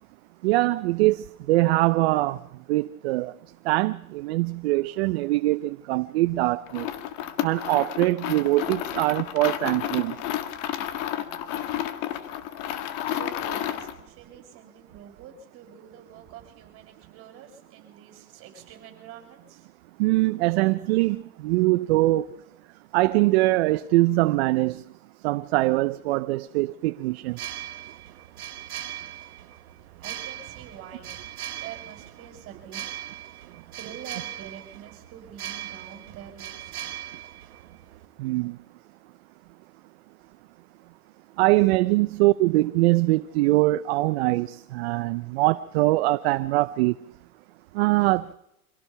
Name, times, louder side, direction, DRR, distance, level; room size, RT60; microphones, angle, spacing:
voice 1, 0.4-2.4 2.7-3.3 3.6-6.9 7.4-10.2 20.0-22.3 22.9-24.8 25.2-27.4 38.2-38.6 41.4-47.0 47.7-48.3, right 19 dB, 45° right, 0.7 m, -23 dB
sound 1, 6.7-14.0, left 11 dB, 40° left, 1.8 m, -31 dB
voice 2, 13.0-19.7 30.0-32.9 33.7-36.9, right 8 dB, 30° right, 7.6 m, -46 dB
sound 2, 27.3-38.1, right 12 dB, 85° right, 2.5 m, -39 dB
26.0 x 17.0 x 5.8 m
supercardioid pair, 145°, 43 cm